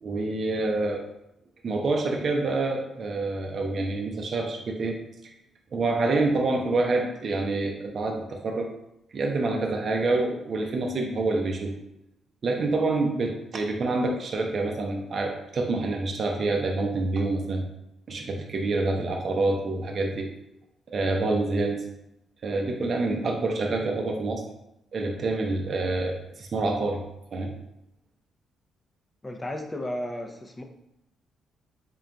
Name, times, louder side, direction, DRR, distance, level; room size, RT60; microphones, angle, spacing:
voice 1, 0.0-1.0 1.6-5.3 5.7-8.7 9.1-11.8 12.4-17.7 18.1-20.3 20.9-21.8 22.4-24.5 24.9-27.5, right 2 dB, 55° right, 2 dB, 0.5 m, -27 dB
voice 2, 29.2-30.6, left 1 dB, 20° left, 4 dB, 0.6 m, -33 dB
3.8 x 3.7 x 2.2 m, 0.85 s
supercardioid pair, 65°, 0 cm